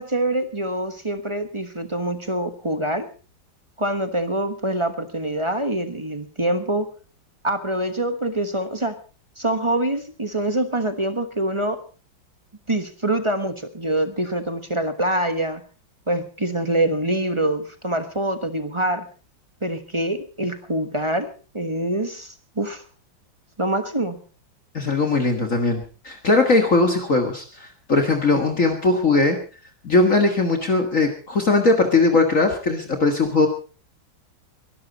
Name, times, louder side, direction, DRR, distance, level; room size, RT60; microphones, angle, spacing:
voice 1, 0.0-3.1 3.8-6.9 7.4-8.9 9.4-11.8 12.7-15.6 16.1-19.0 19.6-22.8 23.6-24.2, right 1 dB, 20° right, 9 dB, 1.0 m, -25 dB
voice 2, 24.7-29.4 29.8-33.5, left 3 dB, 45° left, 4 dB, 2.0 m, -19 dB
22.5 x 12.5 x 4.1 m, 0.37 s
omnidirectional pair, 2.1 m